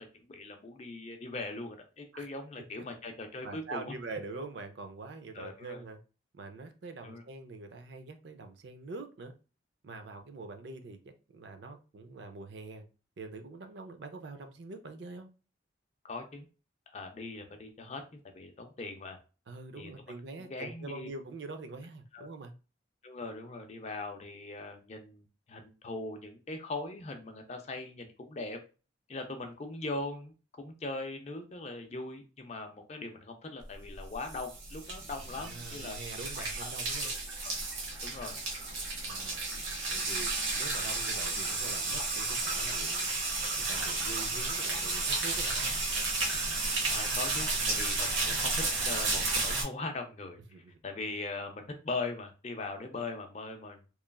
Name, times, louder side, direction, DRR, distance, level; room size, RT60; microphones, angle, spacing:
voice 1, 0.0-3.9 5.3-5.8 7.0-7.2 16.0-16.5 16.9-19.2 19.8-19.9 20.4-21.1 22.1-22.3 23.0-28.6 29.1-36.0 36.4-36.7 37.0-37.1 37.4-37.5 38.0-38.4 46.9-53.8, left 3 dB, 35° left, 5 dB, 0.4 m, -40 dB
voice 2, 3.4-6.0 6.3-9.3 9.8-12.8 13.2-15.3 19.5-22.5 35.4-37.1 39.1-39.5 39.9-40.3 40.6-43.2 43.6-45.7 50.5-50.6, right 3 dB, 60° right, 7 dB, 0.4 m, -44 dB
sound 1, 34.0-49.6, right 3 dB, 75° right, 0.9 m, -32 dB
3.0 x 2.3 x 2.2 m, 0.34 s
head